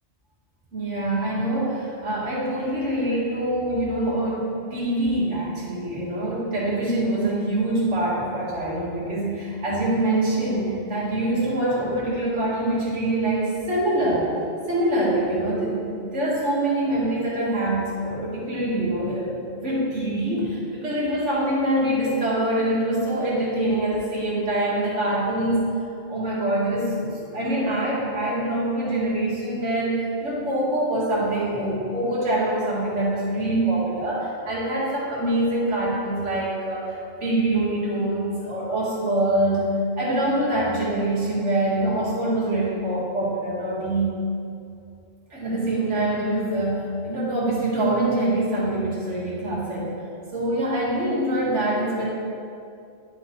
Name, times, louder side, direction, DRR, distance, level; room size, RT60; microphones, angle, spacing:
voice 1, 0.7-14.4 14.7-25.6 26.1-39.7 40.0-44.1 45.3-49.9 50.3-52.1, right 1 dB, 80° right, -6 dB, 2.2 m, -24 dB
11.0 x 4.3 x 4.5 m, 2.5 s
omnidirectional pair, 1.2 m